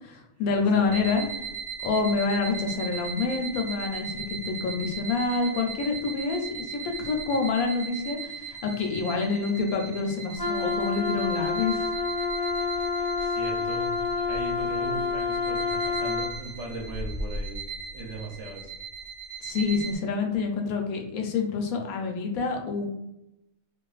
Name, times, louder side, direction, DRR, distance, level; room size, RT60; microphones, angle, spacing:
voice 1, 0.0-1.2 1.8-11.9 19.4-22.9, left 4 dB, 80° left, 2 dB, 1.0 m, -27 dB
voice 2, 0.5-1.2 7.2-7.4 13.2-17.6 17.9-18.7 20.1-20.2, right 2 dB, 60° right, -2 dB, 0.9 m, -38 dB
sound 1, 0.8-20.0, right 5 dB, 90° right, 0.4 m, -38 dB
Wind instrument woodwind instrument, 10.4-16.4, left 4 dB, 25° left, 0.5 m, -28 dB
2.5 x 2.4 x 2.3 m, 0.86 s
omnidirectional pair, 1.5 m